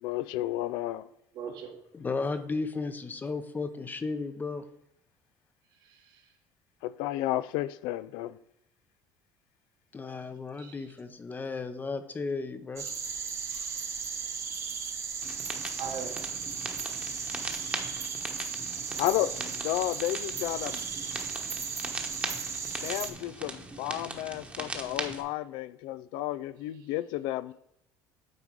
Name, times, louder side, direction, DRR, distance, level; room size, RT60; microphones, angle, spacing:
voice 1, 0.0-1.1 6.8-8.4 19.0-20.8 22.8-27.5, left 15 dB, 80° left, 0.4 m, -32 dB
voice 2, 1.3-1.8 5.8-6.2 10.6-10.9 13.5-13.8 15.8-16.3, right 6 dB, 65° right, 1.4 m, -41 dB
voice 3, 1.9-4.6 9.9-12.9, left 4 dB, 20° left, 0.7 m, -34 dB
sound 1, 12.8-23.1, right 6 dB, 35° right, 1.0 m, -36 dB
sound 2, 15.2-25.2, right 2 dB, 15° right, 1.1 m, -40 dB
9.3 x 3.8 x 4.7 m
cardioid pair, 105°, 8 cm